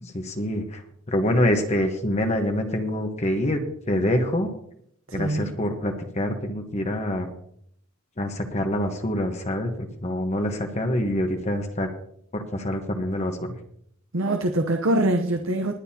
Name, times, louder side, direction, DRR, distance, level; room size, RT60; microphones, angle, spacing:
voice 1, 0.0-0.8 1.1-4.5 5.1-7.3 8.2-9.7 10.0-11.9 12.3-13.4, left 1 dB, 35° left, 4 dB, 1.2 m, -25 dB
voice 2, 5.1-5.5 14.1-15.7, right 1 dB, 85° right, 4 dB, 0.9 m, -24 dB
20.5 x 9.4 x 2.9 m, 0.68 s
head